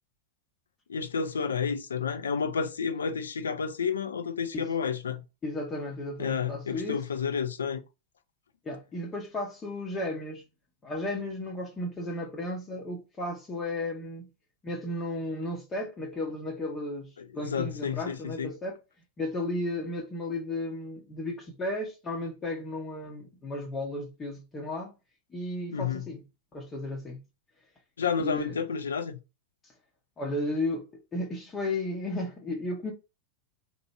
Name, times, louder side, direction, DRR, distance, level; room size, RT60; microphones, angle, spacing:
voice 1, 0.9-5.2 6.2-7.8 17.2-18.5 25.7-26.0 28.0-29.2, left 6 dB, 70° left, 0.5 m, -30 dB
voice 2, 5.4-7.0 8.6-10.4 10.8-14.3 14.6-18.8 19.2-24.9 25.3-26.2 26.5-27.2 28.2-28.6 29.6-29.7 30.2-32.9, left 1 dB, 20° left, 0.9 m, -34 dB
3.0 x 2.6 x 4.0 m
figure-of-eight pair, 90°, 0 cm